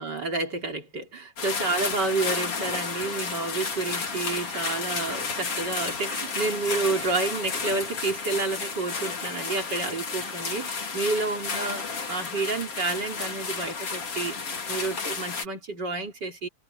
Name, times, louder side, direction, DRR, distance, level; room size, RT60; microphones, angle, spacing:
voice 1, 0.0-14.4 14.7-16.5, right 3 dB, 35° right, 3.8 m, -30 dB
sound 1, 1.4-15.5, left 4 dB, 45° left, 4.3 m, -32 dB
omnidirectional pair, 3.6 m